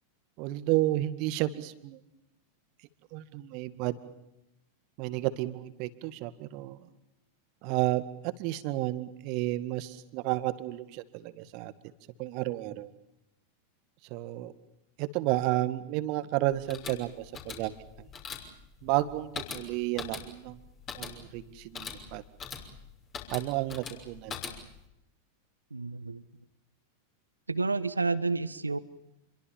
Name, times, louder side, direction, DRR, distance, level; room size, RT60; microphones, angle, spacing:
voice 1, 0.4-2.0 3.1-4.0 5.0-6.8 7.6-8.0 8.4-11.9 12.2-12.9 14.1-14.5 15.0-17.7 18.8-20.6 20.9-22.2 23.3-24.4, right 16 dB, 45° right, 13 dB, 2.0 m, -31 dB
sound 1, 16.5-24.9, left 6 dB, 25° left, 6.1 m, -42 dB
voice 2, 25.7-26.2 27.5-28.8, right 3 dB, 80° right, 17 dB, 1.3 m, -30 dB
28.0 x 23.0 x 7.2 m, 0.86 s
figure-of-eight pair, 90°, 0 cm